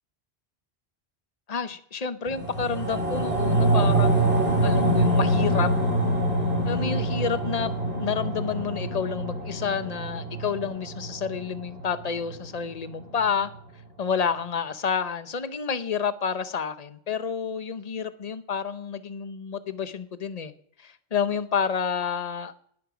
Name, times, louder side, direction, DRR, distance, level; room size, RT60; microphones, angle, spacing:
voice 1, 1.5-5.7 6.7-7.7 8.0-13.5 14.0-20.5 20.8-22.5, left 6 dB, 40° left, 12 dB, 1.0 m, -29 dB
sound 1, 2.3-12.9 13.2-13.3, right 1 dB, 80° right, 7.2 m, -25 dB
19.5 x 11.0 x 5.2 m, 0.64 s
omnidirectional pair, 1.0 m